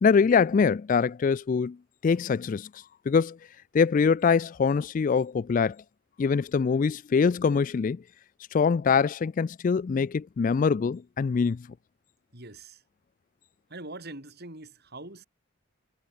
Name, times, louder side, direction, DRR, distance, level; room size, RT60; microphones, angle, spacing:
voice 1, 0.0-1.8 2.0-2.7 3.1-3.4 3.7-5.8 6.2-8.0 8.5-11.7, left 5 dB, 40° left, 0.3 m, -23 dB
voice 2, 12.3-12.8 13.7-15.2, right 2 dB, 50° right, 5.8 m, -43 dB
head